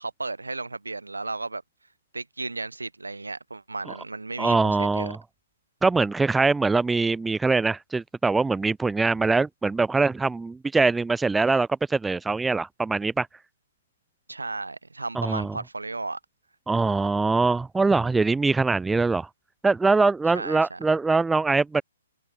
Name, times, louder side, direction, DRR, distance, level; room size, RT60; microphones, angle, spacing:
voice 1, 0.0-1.6 2.1-5.2 14.3-16.2 20.3-20.8, right 3 dB, 75° right, 1.4 m, -34 dB
voice 2, 4.4-5.2 5.8-13.3 15.2-15.5 16.7-19.3 19.6-21.8, right 3 dB, 5° right, 0.4 m, -23 dB
figure-of-eight pair, 120°, 0 cm